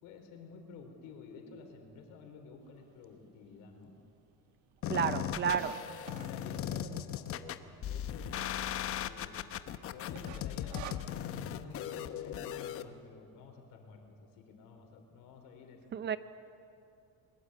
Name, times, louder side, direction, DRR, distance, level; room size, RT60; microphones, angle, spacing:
voice 1, 0.0-4.0 6.2-8.3 9.0-9.4 9.9-15.8, left 5 dB, 85° left, 4 dB, 4.2 m, -51 dB
sound 1, 3.0-3.1 3.7-3.8 4.0-4.1 4.4-6.5 7.1-7.6 7.9-8.0 8.2-8.3 8.8-9.2 9.5-9.8 10.1-11.4, right 11 dB, 60° right, 1.2 m, -46 dB
sound 2, 4.8-12.8, left 10 dB, 40° left, 0.9 m, -38 dB
voice 2, 4.9-5.7 15.9-16.2, right 8 dB, 35° right, 13 dB, 0.6 m, -31 dB
22.0 x 21.5 x 8.2 m, 2.6 s
cardioid pair, 165°, 33 cm